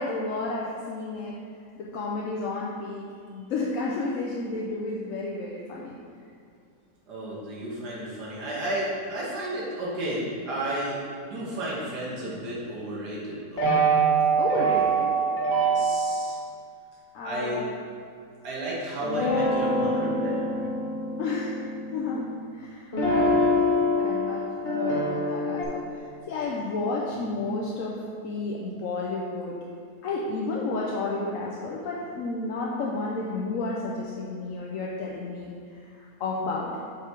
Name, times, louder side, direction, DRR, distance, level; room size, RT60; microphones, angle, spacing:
voice 1, 0.0-1.3 1.8-3.0 3.3-5.9 14.3-15.2 17.1-17.5 21.2-22.3 22.5-22.9 23.1-26.0 26.3-28.0 28.2-29.5 30.0-35.5 36.2-36.7, left 3 dB, 65° left, -4 dB, 0.9 m, -31 dB
voice 2, 7.1-13.7 15.6-16.4 17.2-17.6 18.4-20.7, right 1 dB, 80° right, -6 dB, 1.9 m, -32 dB
sound 1, 13.6-16.3 19.0-22.4 22.9-25.6, right 2 dB, 35° left, 1.8 m, -24 dB
6.9 x 4.5 x 4.5 m, 2.4 s
omnidirectional pair, 1.8 m